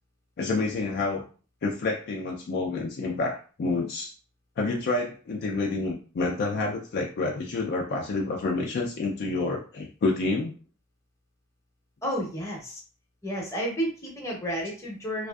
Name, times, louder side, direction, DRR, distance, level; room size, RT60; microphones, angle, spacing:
voice 1, 0.4-1.2 1.6-4.1 4.6-10.5, left 3 dB, 45° left, 0 dB, 0.4 m, -28 dB
voice 2, 12.0-12.8 13.2-15.3, equal, 15° left, -2 dB, 0.7 m, -31 dB
2.5 x 2.4 x 2.3 m, 0.38 s
head